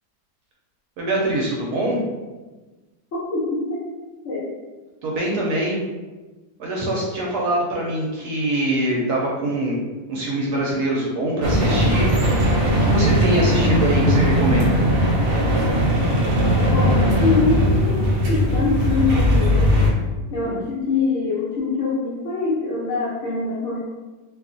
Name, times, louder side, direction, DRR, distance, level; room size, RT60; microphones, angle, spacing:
voice 1, 1.0-2.0 5.0-5.8 6.6-9.8 10.1-12.1 12.7-14.8, right 1 dB, 70° right, -3 dB, 1.0 m, -23 dB
voice 2, 3.3-3.7 4.2-4.5 16.7-19.7 20.3-23.8, left 4 dB, 75° left, -7 dB, 0.6 m, -24 dB
sound 1, 11.4-19.9, equal, 90° right, 0.6 m, -18 dB
2.8 x 2.3 x 2.5 m, 1.2 s
omnidirectional pair, 2.0 m